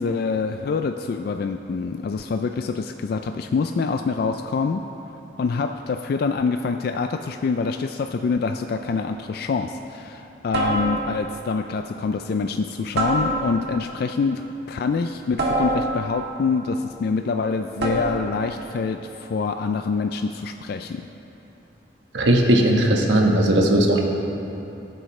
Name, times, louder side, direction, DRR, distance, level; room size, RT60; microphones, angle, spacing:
voice 1, 0.0-4.8 5.4-14.4 14.7-21.1, left 4 dB, 60° left, 6 dB, 0.3 m, -25 dB
sound 1, 8.7-9.1 10.5-11.3 13.0-13.8 15.4-16.3 17.8-18.4, right 1 dB, 65° right, 1.6 m, -25 dB
voice 2, 22.1-24.0, right 1 dB, 90° right, 0 dB, 1.3 m, -17 dB
19.0 x 7.7 x 3.2 m, 3.0 s
head